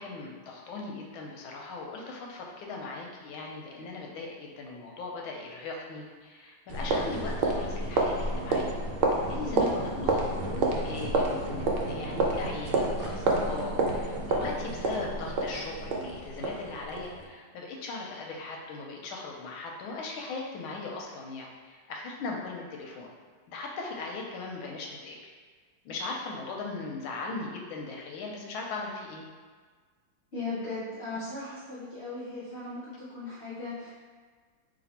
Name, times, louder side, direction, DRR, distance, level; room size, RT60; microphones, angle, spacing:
voice 1, 0.0-8.8 9.3-23.1 23.5-25.2 25.8-29.2, left 3 dB, 85° left, 0 dB, 1.4 m, -39 dB
sound 1, 6.7-17.3, right 2 dB, 85° right, 1.4 m, -29 dB
voice 2, 30.3-33.9, left 3 dB, 70° left, -9 dB, 0.6 m, -37 dB
3.3 x 2.7 x 4.1 m, 1.5 s
omnidirectional pair, 2.3 m